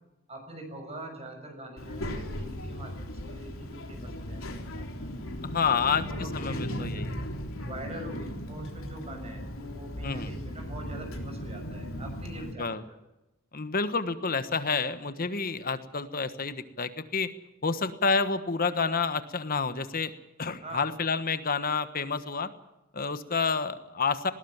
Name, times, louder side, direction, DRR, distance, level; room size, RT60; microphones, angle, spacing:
voice 1, 0.3-5.1 5.6-7.1 7.6-12.7 20.6-20.9, right 1 dB, 30° right, 5 dB, 6.7 m, -43 dB
Child speech kid speaking, 1.8-12.5, equal, 75° left, 3.4 m, -37 dB
voice 2, 5.4-6.0 6.3-7.1 10.0-10.3 12.4-12.8 13.5-17.3 17.6-20.1 20.4-22.5 22.9-24.3, left 4 dB, 45° left, 11 dB, 1.3 m, -29 dB
20.5 x 18.5 x 7.3 m, 0.94 s
head